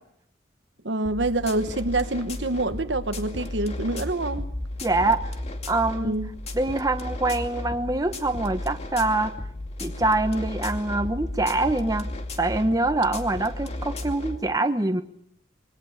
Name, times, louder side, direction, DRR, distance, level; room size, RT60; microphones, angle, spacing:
voice 1, 0.8-4.5 5.9-6.3, right 2 dB, 70° right, 1.3 m, -26 dB
sound 1, 1.0-14.4, left 1 dB, 35° left, 2.5 m, -34 dB
voice 2, 4.8-5.2 5.7-6.2 6.5-9.3 9.8-12.1 12.4-15.0, right 2 dB, 20° right, 1.4 m, -24 dB
27.5 x 22.0 x 6.8 m
head